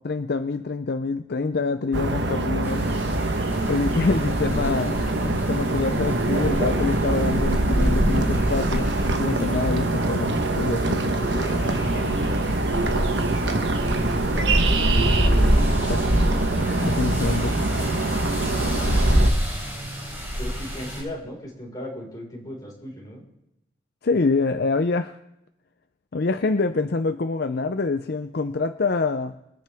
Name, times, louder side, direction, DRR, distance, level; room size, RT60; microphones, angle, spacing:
voice 1, 0.0-2.8 3.7-5.0 5.2-11.0 15.8-16.1 16.8-17.6 24.0-25.2 26.1-29.3, left 3 dB, 60° left, 8 dB, 0.6 m, -26 dB
sound 1, 1.9-19.3, right 2 dB, 70° right, 1.2 m, -24 dB
sound 2, 2.6-21.0, equal, 15° right, 5.3 m, -27 dB
Laughter, 3.6-6.1 7.5-9.9 10.7-13.2 14.1-16.5 17.4-19.3, left 2 dB, 85° left, 2.7 m, -43 dB
voice 2, 12.2-14.9 20.4-23.2, left 1 dB, 20° left, -3 dB, 5.0 m, -38 dB
26.5 x 10.5 x 3.6 m, 0.86 s
head